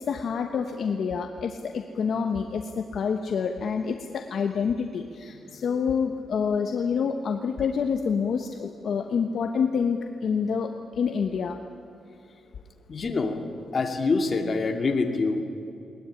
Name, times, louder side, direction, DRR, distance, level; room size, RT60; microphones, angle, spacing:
voice 1, 0.0-11.6, left 6 dB, 50° left, 5 dB, 1.1 m, -27 dB
voice 2, 12.9-13.5 13.7-15.4, left 3 dB, 30° left, 3 dB, 2.3 m, -25 dB
21.5 x 19.0 x 10.0 m, 2.8 s
wide cardioid pair, 175°, 0 cm